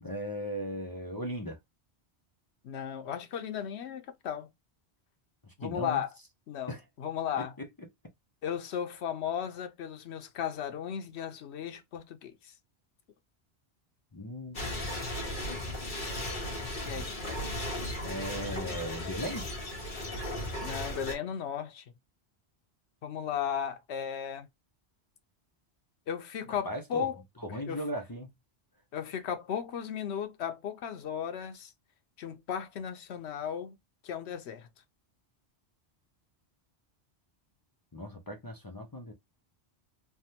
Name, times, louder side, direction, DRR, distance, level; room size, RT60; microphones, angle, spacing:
voice 1, 0.0-1.6 5.4-6.0 6.7-6.8 7.4-7.7 14.1-14.6 16.9-17.1 18.0-19.5 26.6-27.1 27.4-28.3 37.9-39.1, equal, 30° left, 0.4 m, -37 dB
voice 2, 2.6-4.5 5.6-6.1 6.5-7.5 8.4-12.5 16.9-17.2 20.6-21.8 23.0-24.5 26.1-27.2 27.7-27.8 28.9-31.7 32.2-33.8 34.0-34.7, left 8 dB, 80° left, 0.9 m, -35 dB
sound 1, 14.5-21.1, left 1 dB, 50° left, 1.3 m, -36 dB
3.4 x 2.1 x 2.7 m
omnidirectional pair, 1.1 m